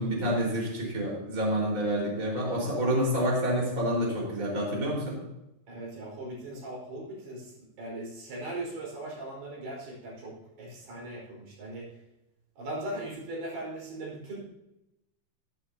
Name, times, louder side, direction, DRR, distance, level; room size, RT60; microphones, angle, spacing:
voice 1, 0.0-5.2, equal, 20° right, -2 dB, 4.8 m, -28 dB
voice 2, 5.7-7.5 7.8-11.9 12.6-14.4, right 1 dB, 75° right, -3 dB, 6.8 m, -39 dB
14.5 x 14.5 x 2.9 m, 0.90 s
omnidirectional pair, 4.6 m